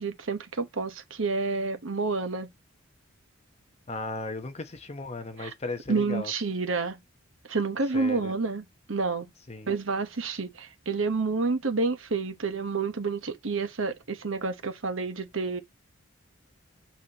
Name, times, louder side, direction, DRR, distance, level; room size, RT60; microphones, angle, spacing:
voice 1, 0.0-2.5 5.4-5.5 5.9-7.0 7.5-9.3 9.7-15.6, right 4 dB, 75° right, 1.1 m, -29 dB
voice 2, 3.9-6.3 7.9-8.3 9.5-9.7, left 2 dB, 30° left, 0.9 m, -36 dB
6.1 x 5.8 x 2.9 m
head